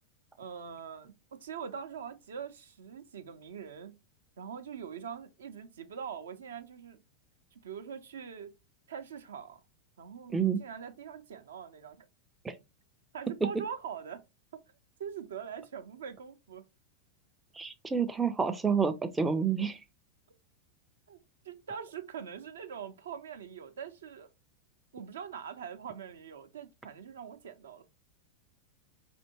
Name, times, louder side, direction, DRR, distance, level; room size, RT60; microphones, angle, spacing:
voice 1, 0.4-3.9 4.4-7.0 7.5-8.5 8.9-9.6 10.0-12.1 13.1-14.2 14.5-14.6 15.0-16.7 21.1-21.2 21.4-24.3 24.9-27.8, right 7 dB, 65° right, 0.6 m, -43 dB
voice 2, 17.5-19.8, right 6 dB, 10° right, 0.4 m, -29 dB
4.2 x 2.7 x 2.8 m
figure-of-eight pair, 90°, 0 cm